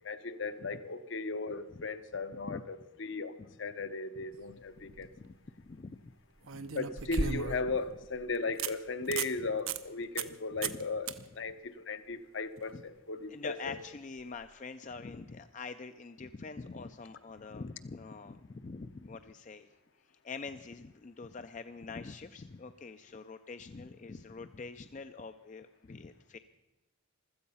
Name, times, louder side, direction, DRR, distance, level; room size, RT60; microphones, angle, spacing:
voice 1, 0.0-3.3 3.6-5.1 6.7-13.8, left 3 dB, 60° left, 10 dB, 0.8 m, -37 dB
sound 1, 4.7-5.1 6.5-7.8 8.2-8.3 8.6-8.7 9.1-9.3 9.7-9.8 10.2-10.4 10.6-10.8 11.1-11.2 14.3-14.4, right 5 dB, 80° right, 0.8 m, -35 dB
voice 2, 4.8-5.3 5.6-6.1 6.5-6.7 9.1-9.2 10.6-10.8 12.7-12.8 13.3-19.7 20.2-26.4, left 4 dB, 35° left, 9 dB, 0.4 m, -45 dB
15.5 x 13.5 x 5.5 m, 1.1 s
head